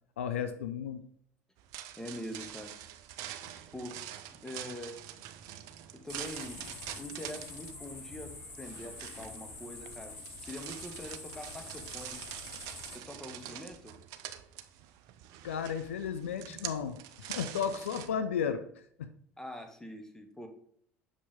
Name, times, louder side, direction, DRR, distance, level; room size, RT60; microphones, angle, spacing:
voice 1, 0.2-1.1 15.4-19.1, left 7 dB, 75° left, 0.4 m, -34 dB
sound 1, 1.6-18.1, right 11 dB, 55° right, 0.5 m, -45 dB
voice 2, 2.0-2.7 3.7-4.0 4.4-5.0 5.9-10.1 10.4-12.2 12.9-13.9 19.4-20.5, left 1 dB, 5° left, 1.3 m, -44 dB
sound 2, 6.1-13.0, left 3 dB, 35° left, 2.5 m, -46 dB
6.6 x 5.3 x 3.5 m
figure-of-eight pair, 65°, 7 cm